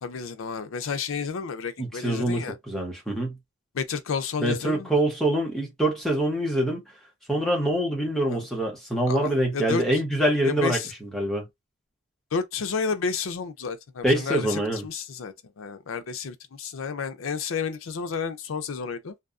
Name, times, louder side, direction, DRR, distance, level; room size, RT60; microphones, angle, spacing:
voice 1, 0.0-2.6 3.7-4.9 8.3-8.5 9.1-9.8 10.4-10.9 12.3-19.1, left 5 dB, 75° left, 0.5 m, -31 dB
voice 2, 1.8-3.3 4.4-6.8 7.3-11.5 14.0-14.8, right 1 dB, ahead, 0.8 m, -25 dB
2.7 x 2.1 x 2.4 m
head